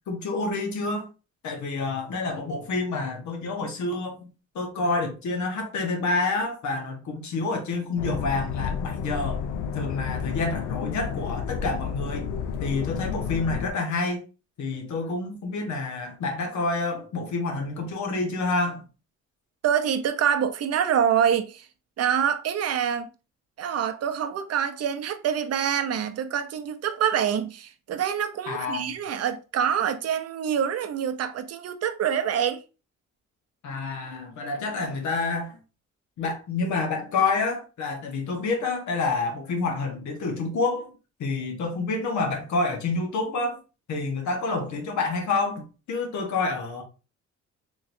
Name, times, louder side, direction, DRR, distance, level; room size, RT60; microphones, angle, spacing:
voice 1, 0.1-1.1 1.4-4.3 4.5-9.4 9.7-14.2 14.6-18.8 28.5-29.0 33.6-35.6 36.2-40.9 41.2-43.6 43.9-46.8, left 3 dB, 70° left, 1.1 m, -28 dB
sound 1, 8.0-13.7, left 7 dB, 90° left, 0.5 m, -31 dB
voice 2, 19.6-21.7 22.0-23.1 23.6-32.6, right 8 dB, 55° right, 0.6 m, -26 dB
3.7 x 3.1 x 2.6 m
cardioid pair, 90°, 30 cm